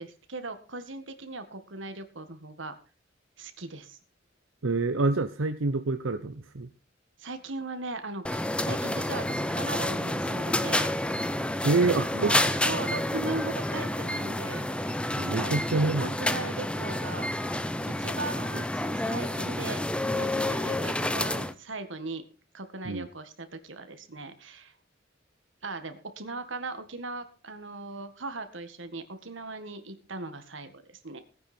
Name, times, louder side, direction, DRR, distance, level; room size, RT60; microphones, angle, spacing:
voice 1, 0.0-2.8 3.4-4.0 7.2-10.9 12.1-15.0 15.2-17.3 17.9-19.8 20.1-22.2 22.5-24.7 25.6-31.2, right 3 dB, 70° right, 9 dB, 1.8 m, -38 dB
voice 2, 4.6-6.7 11.6-12.5 15.2-16.1 22.8-23.1, right 3 dB, 90° right, 9 dB, 0.8 m, -27 dB
sound 1, 8.2-21.5, left 1 dB, 5° left, 0.7 m, -29 dB
17.5 x 9.5 x 4.4 m, 0.36 s
head